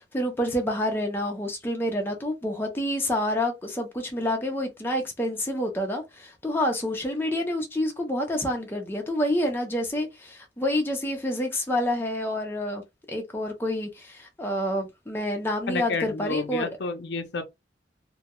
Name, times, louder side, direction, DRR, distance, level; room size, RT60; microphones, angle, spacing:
voice 1, 0.0-12.8 13.1-16.7, left 1 dB, 10° left, 0.5 m, -28 dB
voice 2, 15.7-17.4, left 3 dB, 70° left, 0.5 m, -30 dB
2.2 x 2.1 x 2.8 m
head